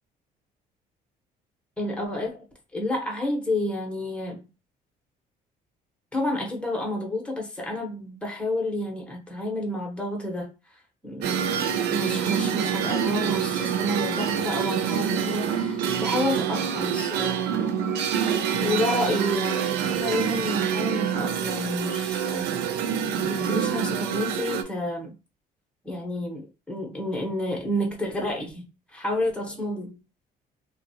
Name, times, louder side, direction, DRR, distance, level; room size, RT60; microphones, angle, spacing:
voice 1, 1.8-2.4 2.7-4.5 6.1-11.6 11.9-17.5 18.6-22.6 23.2-25.1 25.8-29.9, left 1 dB, 5° left, 1.0 m, -30 dB
sound 1, 11.2-24.6, right 8 dB, 80° right, 0.4 m, -26 dB
2.3 x 2.3 x 2.7 m
cardioid pair, 110°, 17 cm